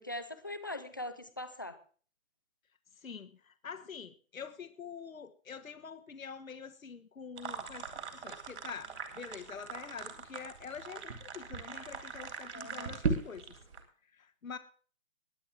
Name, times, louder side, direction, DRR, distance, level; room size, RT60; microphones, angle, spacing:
voice 1, 0.0-1.8 12.5-13.0, left 1 dB, 15° left, 10 dB, 0.5 m, -41 dB
voice 2, 3.0-13.5 14.1-14.6, left 6 dB, 75° left, 9 dB, 1.4 m, -46 dB
sound 1, 7.4-13.8, right 4 dB, 55° right, 3.2 m, -39 dB
21.5 x 8.7 x 3.5 m, 0.42 s
hypercardioid pair, 155°, 40 cm